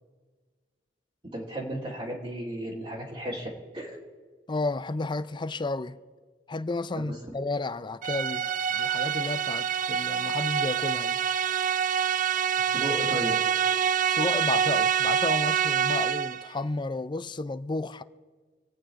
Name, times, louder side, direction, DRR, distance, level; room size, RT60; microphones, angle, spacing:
voice 1, 1.3-4.0 7.0-7.2 12.6-13.4, right 1 dB, 30° right, 2.2 m, -34 dB
voice 2, 4.5-6.0 6.5-11.2 14.1-18.0, left 3 dB, 25° left, 0.5 m, -32 dB
sound 1, 8.0-16.5, right 8 dB, 45° right, 0.4 m, -26 dB
25.5 x 8.8 x 4.6 m
head